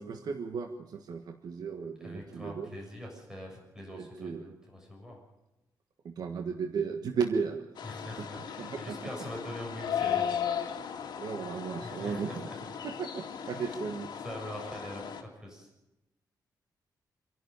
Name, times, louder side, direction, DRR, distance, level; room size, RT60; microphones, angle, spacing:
voice 1, 0.0-2.7 3.9-4.5 6.0-7.7 8.6-9.0 11.2-12.5 12.8-14.1, right 5 dB, 60° right, 5 dB, 1.5 m, -35 dB
voice 2, 2.0-5.2 7.8-10.4 11.8-12.6 13.5-13.9 14.2-15.7, equal, 10° right, -1 dB, 7.0 m, -43 dB
sound 1, 7.8-15.2, left 8 dB, 75° left, 2.4 m, -36 dB
27.0 x 11.5 x 9.4 m, 0.97 s
wide cardioid pair, 160°, 7 cm